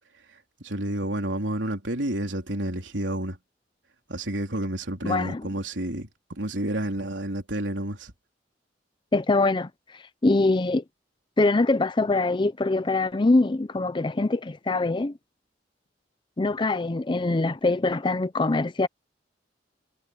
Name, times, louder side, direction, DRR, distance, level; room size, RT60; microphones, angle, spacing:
voice 1, 0.6-3.4 4.1-8.1, right 1 dB, 90° right, 3.7 m, -30 dB
voice 2, 5.0-5.5 9.1-9.7 10.2-10.8 11.4-15.1 16.4-18.9, left 2 dB, 25° left, 0.5 m, -23 dB
head